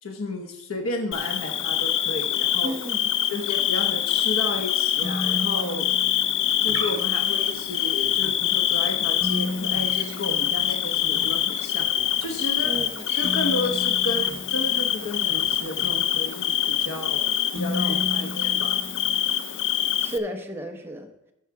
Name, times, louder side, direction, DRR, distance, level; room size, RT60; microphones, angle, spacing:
voice 1, 0.0-2.7 3.3-5.9 6.6-11.9 12.2-12.7 13.2-18.8, left 1 dB, 85° left, 3 dB, 1.0 m, -32 dB
Bird / Cricket, 1.1-20.2, left 11 dB, 60° left, 0.5 m, -25 dB
voice 2, 2.6-3.1 12.6-13.0 17.8-18.2 20.0-21.1, equal, 10° right, 4 dB, 0.9 m, -33 dB
sound 1, 5.0-6.7 9.2-11.2 13.2-15.4 17.6-19.6, left 2 dB, 5° left, 2.0 m, -34 dB
sound 2, 6.3-16.3, right 3 dB, 60° right, 1.1 m, -44 dB
14.0 x 4.8 x 4.7 m, 0.87 s
head